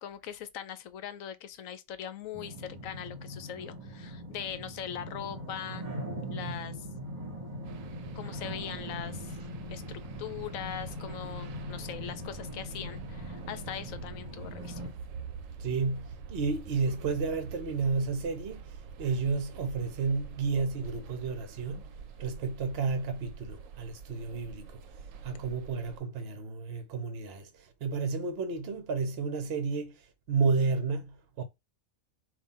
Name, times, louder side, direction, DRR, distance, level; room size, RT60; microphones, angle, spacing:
voice 1, 0.0-5.9 6.3-6.9 8.2-9.4 9.7-14.9, left 9 dB, 75° left, 1.0 m, -41 dB
sound 1, 2.3-14.9, equal, 35° right, 1.2 m, -41 dB
sound 2, 7.6-26.0, right 6 dB, 75° right, 0.9 m, -46 dB
voice 2, 15.6-24.8 25.2-31.4, right 4 dB, 55° right, 0.9 m, -32 dB
3.7 x 2.6 x 4.1 m
omnidirectional pair, 1.4 m